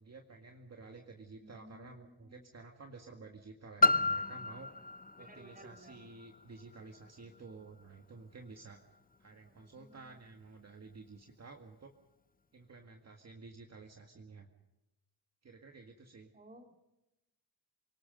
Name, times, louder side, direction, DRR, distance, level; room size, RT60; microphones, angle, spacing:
voice 1, 0.0-4.7 5.2-8.8 9.2-11.9 12.5-14.5 15.4-16.3, right 3 dB, 40° right, 4 dB, 1.9 m, -52 dB
voice 2, 1.4-2.4 5.2-6.0 9.4-10.2 16.3-16.7, right 1 dB, 20° right, 5 dB, 2.7 m, -57 dB
Piano, 3.8-9.2 10.0-10.1, left 3 dB, 20° left, 0.8 m, -34 dB
28.0 x 19.0 x 5.3 m, 0.96 s
wide cardioid pair, 120°, 42 cm